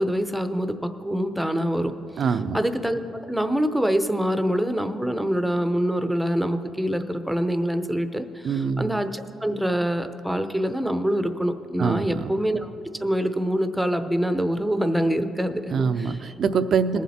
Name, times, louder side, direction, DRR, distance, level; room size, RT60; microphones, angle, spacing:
voice 1, 0.0-1.9 2.5-12.7 13.0-16.2 16.9-17.0, equal, 5° right, 9 dB, 0.8 m, -25 dB
voice 2, 2.2-2.6 8.4-9.0 11.8-12.3 15.7-17.0, right 6 dB, 60° right, 11 dB, 0.6 m, -24 dB
21.0 x 7.4 x 4.3 m, 2.7 s
cardioid pair, 90°, 0 cm